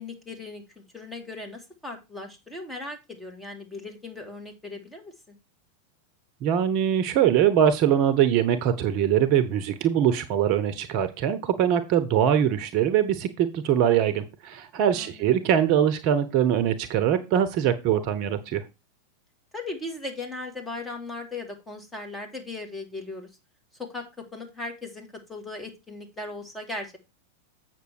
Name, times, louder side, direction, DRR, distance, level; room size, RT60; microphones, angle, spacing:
voice 1, 0.0-5.3 14.9-15.3 19.5-23.3 23.8-27.0, left 2 dB, 10° left, 3 dB, 2.6 m, -38 dB
voice 2, 6.4-18.6, right 9 dB, 45° right, 11 dB, 0.9 m, -22 dB
8.2 x 6.1 x 4.7 m, 0.25 s
figure-of-eight pair, 90°, 0 cm